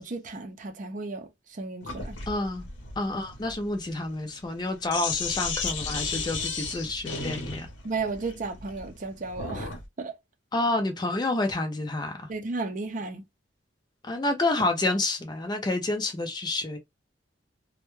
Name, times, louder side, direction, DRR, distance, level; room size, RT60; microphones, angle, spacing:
voice 1, 0.0-2.2 7.8-10.2 12.3-13.2, right 3 dB, 45° right, 0.5 m, -34 dB
Sink (filling or washing), 1.8-9.9, left 4 dB, 80° left, 0.8 m, -34 dB
voice 2, 2.3-2.6 3.0-7.7 10.5-12.3 14.0-16.8, left 2 dB, 25° left, 0.4 m, -29 dB
2.2 x 2.2 x 3.0 m
head